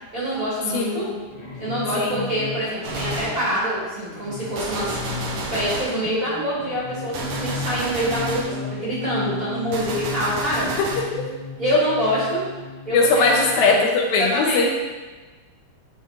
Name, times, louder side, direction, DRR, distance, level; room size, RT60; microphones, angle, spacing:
voice 1, 0.1-1.1 1.6-10.7 11.6-12.4 12.9-13.9 14.2-14.7, equal, 35° right, -10 dB, 1.6 m, -25 dB
voice 2, 0.7-1.1 2.0-2.3 11.1-11.2 11.7-11.8 12.9-14.7, left 4 dB, 80° left, 1 dB, 1.8 m, -20 dB
sound 1, 1.3-13.7, left 3 dB, 40° left, 0.8 m, -35 dB
Gunshot gunfire, 2.8-3.5 4.6-6.0 7.1-8.6 9.7-11.1, right 3 dB, 85° right, 1.3 m, -31 dB
9.5 x 3.7 x 2.9 m, 1.3 s
omnidirectional pair, 3.5 m